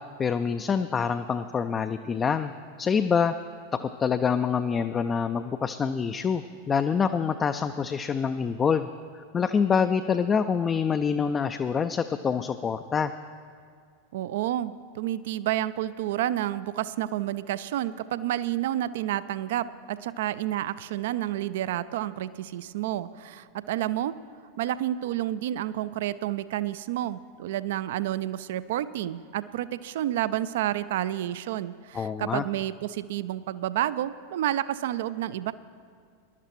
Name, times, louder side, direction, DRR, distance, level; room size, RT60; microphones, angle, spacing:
voice 1, 0.2-2.5 2.8-3.3 3.7-8.9 9.1-13.1 31.9-32.5, left 6 dB, 20° left, 8 dB, 0.3 m, -26 dB
voice 2, 14.1-24.2 24.6-35.5, right 13 dB, 55° right, 16 dB, 0.4 m, -30 dB
20.5 x 11.5 x 3.1 m, 2.2 s
figure-of-eight pair, 90°, 0 cm